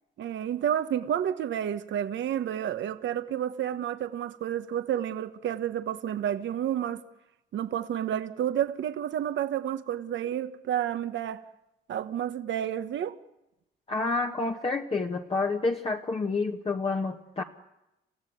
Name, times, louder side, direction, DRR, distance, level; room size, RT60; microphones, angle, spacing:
voice 1, 0.2-7.0 7.5-11.4 11.9-13.2, right 10 dB, 70° right, 1.2 m, -30 dB
voice 2, 13.9-17.4, left 3 dB, 30° left, 1.4 m, -29 dB
28.5 x 15.5 x 9.3 m
cardioid pair, 90°, 20 cm